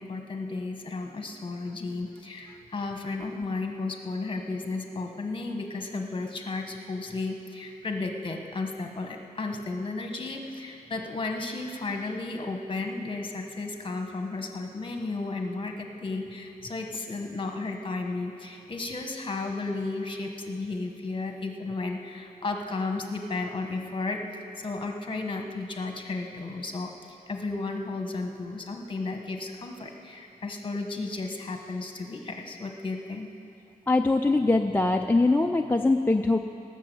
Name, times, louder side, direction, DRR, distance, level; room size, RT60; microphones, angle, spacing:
voice 1, 0.0-24.2 24.6-26.9 27.3-33.3, left 3 dB, 35° left, 3 dB, 1.3 m, -33 dB
voice 2, 33.9-36.4, left 2 dB, 10° left, 3 dB, 0.4 m, -22 dB
17.0 x 6.9 x 7.8 m, 2.8 s
wide cardioid pair, 125°, 15 cm